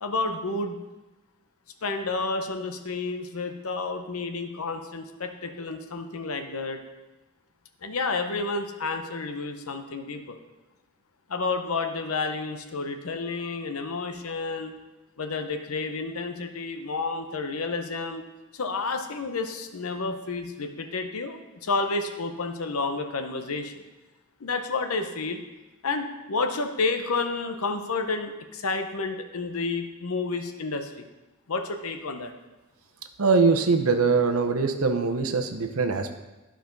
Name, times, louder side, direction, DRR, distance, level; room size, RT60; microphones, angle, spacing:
voice 1, 0.0-0.8 1.8-6.8 7.8-10.4 11.3-14.7 15.2-18.2 18.5-23.7 24.4-25.4 25.8-31.0 31.5-32.3, left 3 dB, 85° left, 6 dB, 0.8 m, -30 dB
voice 2, 33.2-36.2, right 4 dB, 80° right, 6 dB, 0.8 m, -22 dB
11.0 x 5.1 x 5.2 m, 1.1 s
head